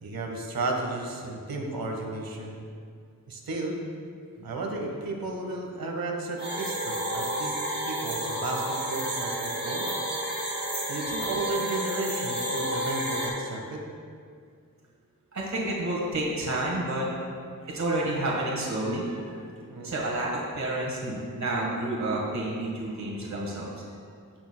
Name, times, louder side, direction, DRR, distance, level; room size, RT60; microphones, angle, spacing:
voice 1, 0.0-2.6 3.3-3.8 4.4-7.5 7.9-9.9 10.9-13.8 19.7-20.0, right 2 dB, 90° right, 1 dB, 1.2 m, -33 dB
sound 1, 6.4-13.3, right 1 dB, 30° right, 1.9 m, -31 dB
voice 2, 15.3-17.1 17.6-19.4 19.8-23.7, right 1 dB, 55° right, -3 dB, 1.5 m, -30 dB
15.0 x 6.4 x 2.2 m, 2.2 s
wide cardioid pair, 125°, 34 cm